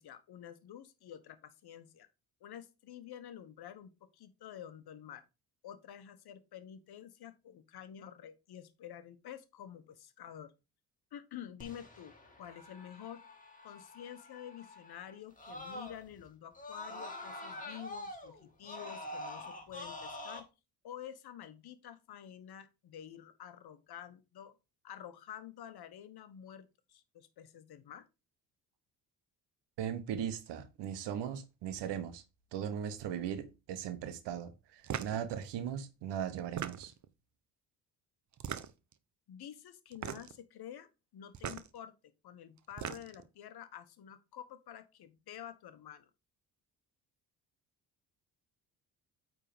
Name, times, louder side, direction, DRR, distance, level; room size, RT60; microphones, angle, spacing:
voice 1, 0.0-2.1 2.4-5.3 5.6-10.5 11.1-13.2 13.6-20.5 20.8-24.5 24.8-28.1 39.3-41.9 42.2-46.1, left 10 dB, 60° left, 1.2 m, -49 dB
Screaming, 11.6-16.2 16.5-20.4, left 1 dB, 20° left, 2.7 m, -46 dB
voice 2, 29.8-32.2 32.5-36.9, right 9 dB, 70° right, 1.3 m, -38 dB
sound 1, 34.8-35.2 36.4-37.1 38.3-38.9 39.9-40.4 41.3-41.7 42.6-43.3, right 9 dB, 40° right, 0.9 m, -39 dB
8.7 x 3.8 x 5.1 m
hypercardioid pair, 55°, 43 cm